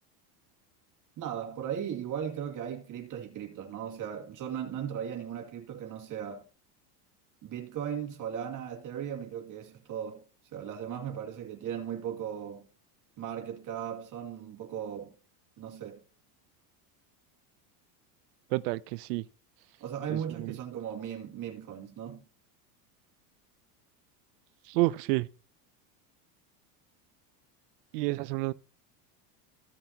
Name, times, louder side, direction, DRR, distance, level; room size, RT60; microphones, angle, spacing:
voice 1, 1.2-6.5 7.4-10.2 10.5-12.7 13.2-15.1 15.6-16.0 19.8-22.2, right 9 dB, 40° right, 2.2 m, -37 dB
voice 2, 18.5-19.2 20.1-20.5 24.7-25.3 27.9-28.5, right 20 dB, 85° right, 0.6 m, -29 dB
15.5 x 5.7 x 2.8 m
supercardioid pair, 130°, 47 cm